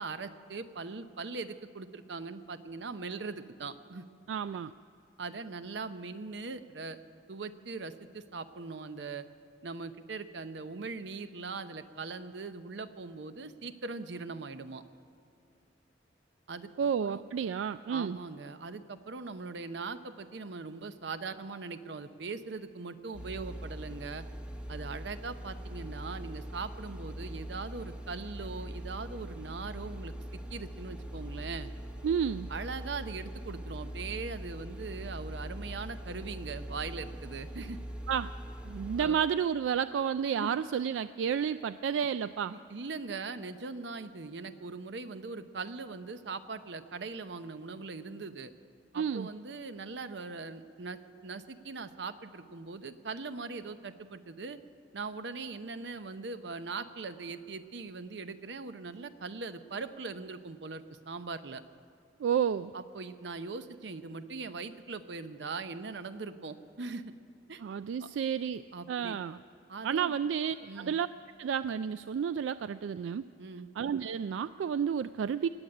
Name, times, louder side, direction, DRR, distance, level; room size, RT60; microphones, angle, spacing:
voice 1, 0.0-4.0 5.2-7.0 7.3-9.3 9.6-14.8 16.5-16.7 17.0-17.2 17.9-24.2 24.7-31.7 32.5-37.8 39.0-39.2 40.4-40.5 42.5-48.5 48.9-54.6 54.9-61.6 62.7-67.1 67.5-67.6 68.0-68.1 68.7-69.2 69.7-70.2 70.6-70.9 73.4-73.7, right 4 dB, 65° right, 11 dB, 0.7 m, -40 dB
voice 2, 4.3-4.7 16.8-18.2 32.0-32.5 38.1-38.3 38.7-42.5 48.9-49.3 62.2-62.7 67.6-69.4 69.8-71.1 71.4-73.2 73.8-75.5, right 7 dB, 85° right, 14 dB, 0.3 m, -31 dB
sound 1, 23.1-39.1, equal, 5° right, 0.9 m, -42 dB
18.5 x 8.0 x 8.8 m, 2.5 s
head